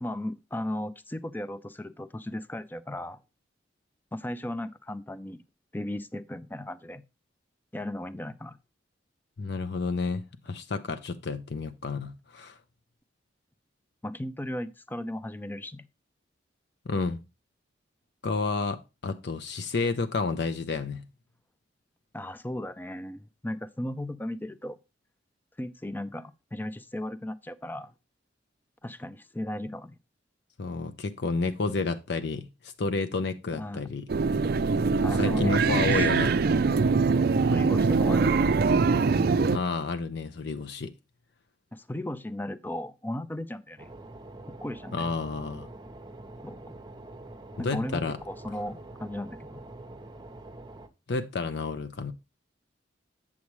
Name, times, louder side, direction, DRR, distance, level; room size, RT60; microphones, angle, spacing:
voice 1, 0.0-3.2 4.1-5.4 5.7-7.0 7.7-8.6 14.0-15.8 22.1-24.8 25.6-27.9 28.8-29.9 33.5-33.9 35.0-35.6 35.9-36.1 37.5-38.6 41.7-43.9 44.5-45.1 46.4-46.8 47.6-49.6, left 1 dB, 10° left, 0.4 m, -36 dB
voice 2, 9.4-12.6 16.9-17.2 18.2-21.0 30.6-34.1 35.2-36.4 39.5-40.9 44.9-45.7 47.6-48.2 51.1-52.1, left 3 dB, 60° left, 0.6 m, -30 dB
sound 1, 34.1-39.6, right 4 dB, 50° right, 0.4 m, -23 dB
sound 2, 43.8-50.9, right 2 dB, 25° right, 0.7 m, -45 dB
8.3 x 7.2 x 3.1 m
head